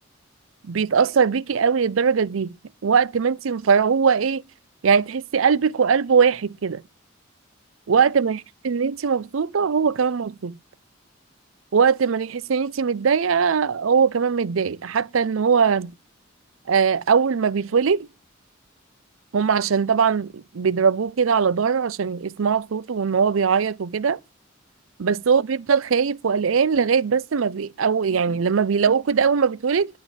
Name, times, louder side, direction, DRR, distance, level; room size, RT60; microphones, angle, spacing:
voice 1, 0.6-2.5 2.8-4.4 4.8-6.8 7.9-8.4 8.6-10.5 11.7-15.9 16.7-18.1 19.3-24.2 25.0-29.9, right 6 dB, 85° right, 0.5 m, -21 dB
10.5 x 5.4 x 7.4 m
head